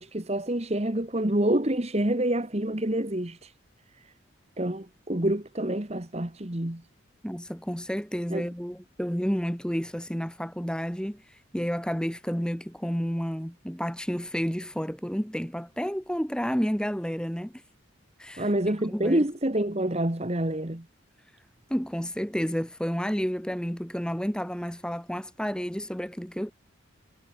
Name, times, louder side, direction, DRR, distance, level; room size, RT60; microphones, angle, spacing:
voice 1, 0.0-3.5 4.6-6.8 8.3-8.5 18.4-20.8, right 1 dB, 30° right, 1.6 m, -27 dB
voice 2, 7.2-17.6 18.2-18.5 18.9-19.2 21.7-26.5, equal, 5° left, 2.4 m, -31 dB
head